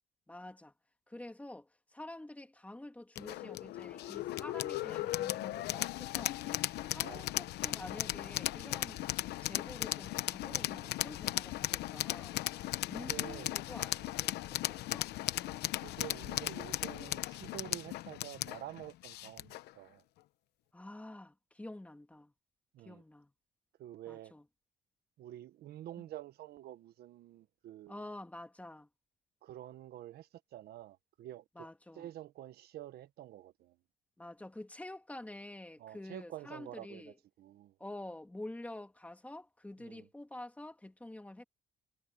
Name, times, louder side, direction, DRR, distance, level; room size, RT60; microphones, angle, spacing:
voice 1, 0.3-0.7 1.1-6.5 6.9-9.0 9.4-12.4 12.9-15.1 20.7-22.3 22.8-23.3 24.1-24.4 27.9-28.9 31.6-32.1 34.2-37.2 37.8-41.4, left 1 dB, 10° left, 2.6 m, -48 dB
sound 1, 3.2-19.7, left 16 dB, 80° left, 0.9 m, -37 dB
voice 2, 6.9-7.3 13.1-13.6 15.7-20.0 22.7-23.0 23.8-24.3 25.2-28.0 29.4-31.7 31.9-33.8 35.8-37.7 39.8-40.1, right 13 dB, 70° right, 1.2 m, -48 dB
cardioid pair, 110°, 17 cm